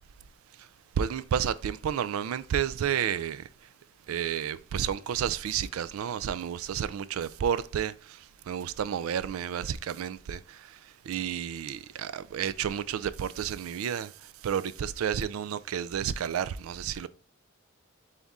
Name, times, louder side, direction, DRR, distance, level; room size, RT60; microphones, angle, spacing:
voice 1, 1.0-3.5 4.1-10.8 11.1-17.1, right 8 dB, 85° right, 0.3 m, -31 dB
4.1 x 3.6 x 3.6 m
head